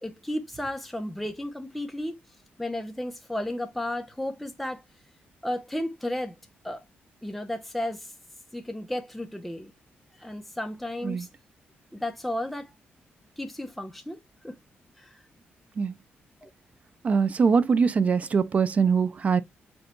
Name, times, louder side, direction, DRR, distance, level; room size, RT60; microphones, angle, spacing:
voice 1, 0.0-2.2 2.6-4.8 5.4-6.3 6.6-6.8 7.2-8.1 8.5-9.7 10.2-11.3 11.9-12.7 13.4-14.6 15.0-15.2 16.4-16.5, left 1 dB, ahead, 0.7 m, -33 dB
voice 2, 17.0-19.4, right 5 dB, 35° right, 0.5 m, -22 dB
5.2 x 2.3 x 4.4 m
wide cardioid pair, 145°, 4 cm